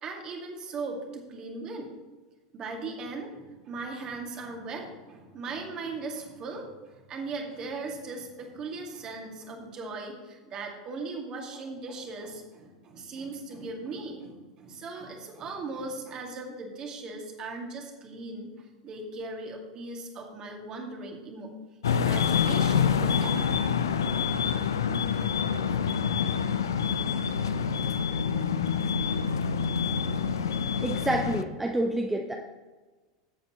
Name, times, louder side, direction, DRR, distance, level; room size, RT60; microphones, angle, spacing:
voice 1, 0.0-1.9 2.5-21.5 21.9-23.5, right 3 dB, 35° right, 1 dB, 2.3 m, -38 dB
sound 1, 21.8-31.4, left 7 dB, 70° left, 0.5 m, -27 dB
voice 2, 30.8-32.3, right 1 dB, 10° right, 2 dB, 0.8 m, -28 dB
14.0 x 7.8 x 3.1 m, 1.3 s
figure-of-eight pair, 85°, 2 cm